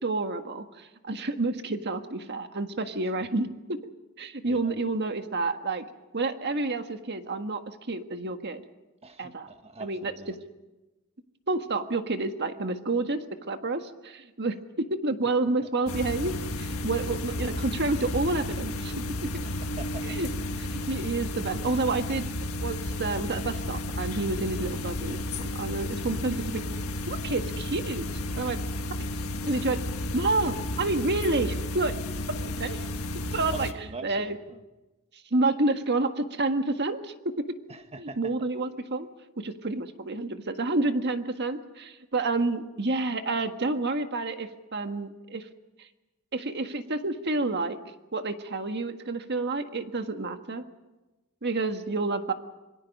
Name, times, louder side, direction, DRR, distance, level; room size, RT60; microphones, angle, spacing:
voice 1, 0.0-3.8 4.2-5.8 6.1-8.6 9.2-9.5 9.8-10.1 11.5-13.2 13.5-18.9 20.0-20.3 20.6-22.2 22.6-26.6 27.1-28.1 28.3-28.6 29.0-29.1 29.4-29.8 30.1-31.9 32.3-32.8 33.3-33.7 34.0-34.4 35.3-37.1 38.0-39.1 39.4-45.5 45.8-45.9 46.3-47.8 48.1-50.6 51.4-52.3, right 2 dB, 50° right, 7 dB, 1.6 m, -29 dB
voice 2, 9.0-10.3 19.4-20.0 33.5-34.6 37.7-38.3, right 3 dB, 30° right, 7 dB, 1.5 m, -42 dB
sound 1, 15.9-33.7, left 1 dB, 80° left, 1.7 m, -33 dB
26.0 x 23.5 x 5.4 m, 1.1 s
head